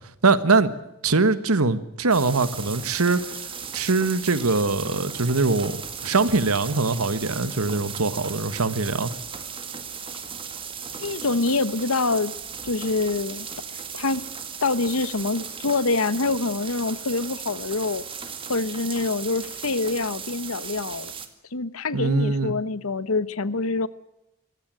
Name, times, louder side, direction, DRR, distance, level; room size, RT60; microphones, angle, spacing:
voice 1, 0.2-0.7 1.0-3.2 3.7-5.7 6.0-9.1 21.9-22.5, right 3 dB, 90° right, 1.5 m, -22 dB
sound 1, 2.1-21.3, right 6 dB, 25° right, 2.0 m, -36 dB
voice 2, 11.0-12.3 12.6-14.2 14.6-18.0 18.5-21.1 21.5-23.9, left 3 dB, 75° left, 1.1 m, -25 dB
24.5 x 15.5 x 9.1 m
head